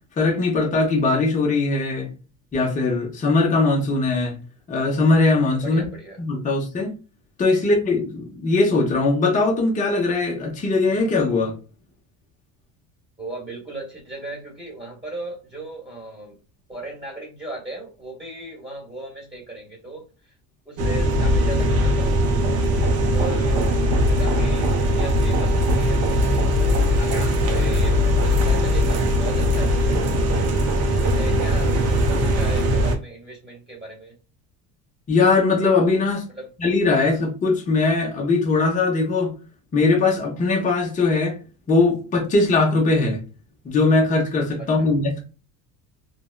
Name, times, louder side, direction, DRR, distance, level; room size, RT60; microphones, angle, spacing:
voice 1, 0.2-2.1 2.5-4.4 4.7-5.9 6.2-6.9 7.4-11.5 35.1-36.2 36.6-39.3 39.7-41.4 41.7-43.2 43.6-45.2, left 3 dB, 20° left, 0.6 m, -20 dB
voice 2, 5.6-6.2 7.6-7.7 13.2-16.4 16.7-20.4 20.6-23.7 24.0-26.0 26.6-30.0 31.0-34.1 36.3-36.5 44.6-44.9, right 1 dB, 15° right, 1.4 m, -37 dB
sound 1, 20.8-33.0, equal, 40° right, 0.5 m, -20 dB
3.4 x 2.1 x 2.2 m
cardioid pair, 130°, 39 cm